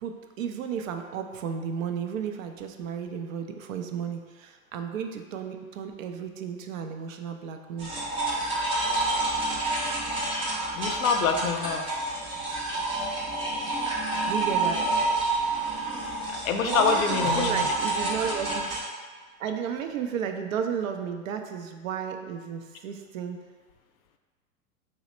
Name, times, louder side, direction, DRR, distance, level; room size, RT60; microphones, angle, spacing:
voice 1, 0.0-7.9 14.3-14.8 16.6-18.7 19.4-23.4, right 7 dB, 70° right, 6 dB, 0.5 m, -33 dB
sound 1, 7.8-18.8, right 2 dB, 15° right, 0.4 m, -28 dB
voice 2, 10.7-11.8 16.3-17.7, left 5 dB, 80° left, 5 dB, 0.5 m, -26 dB
3.0 x 2.1 x 4.1 m, 1.5 s
hypercardioid pair, 105°, 41 cm